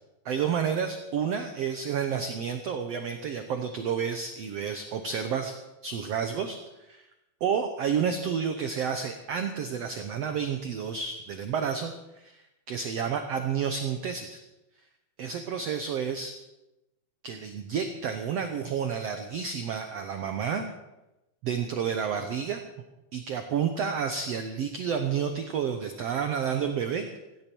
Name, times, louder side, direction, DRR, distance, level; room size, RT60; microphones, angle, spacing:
voice 1, 0.2-5.5 5.8-6.6 6.9-7.0 7.4-12.4 12.7-14.4 15.2-16.4 17.2-20.7 21.4-22.6 23.1-27.1, right 7 dB, 80° right, 6 dB, 1.4 m, -30 dB
17.0 x 15.5 x 4.6 m, 0.97 s
omnidirectional pair, 4.2 m